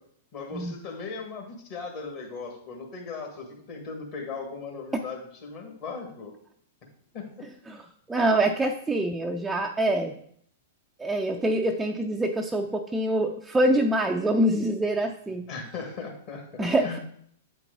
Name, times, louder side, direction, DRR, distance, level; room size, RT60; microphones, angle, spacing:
voice 1, 0.3-6.3 7.1-7.4 8.3-8.4 15.5-17.0, left 4 dB, 45° left, 1 dB, 1.7 m, -38 dB
voice 2, 8.1-10.1 11.0-15.5 16.6-17.0, right 1 dB, 10° right, 2 dB, 0.5 m, -25 dB
8.0 x 4.6 x 3.9 m, 0.64 s
figure-of-eight pair, 105°, 0 cm